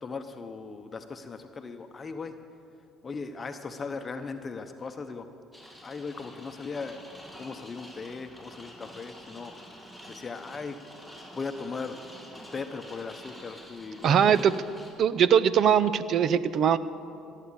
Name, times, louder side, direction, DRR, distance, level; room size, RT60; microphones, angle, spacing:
voice 1, 0.0-2.3 3.0-5.3 5.8-7.0 7.4-9.5 10.1-10.8 11.3-12.0 12.5-14.4, left 4 dB, 30° left, 7 dB, 0.8 m, -38 dB
sound 1, 5.5-14.9, equal, 10° right, 3.8 m, -48 dB
voice 2, 14.0-14.5 15.0-16.8, right 8 dB, 55° right, 16 dB, 0.6 m, -21 dB
16.5 x 8.4 x 8.4 m, 2.6 s
supercardioid pair, 80°, 0 cm